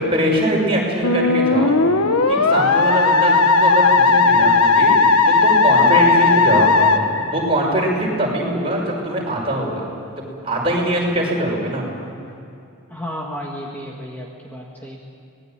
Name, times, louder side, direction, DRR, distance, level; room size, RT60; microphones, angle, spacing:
voice 1, 0.0-1.8 2.3-4.9 5.2-9.8 10.4-11.8, right 1 dB, 25° right, -2 dB, 6.0 m, -22 dB
Musical instrument, 1.0-7.9, left 3 dB, 80° left, 1.3 m, -16 dB
voice 2, 12.9-15.0, equal, 10° left, -2 dB, 2.0 m, -32 dB
25.5 x 20.0 x 9.3 m, 2.6 s
head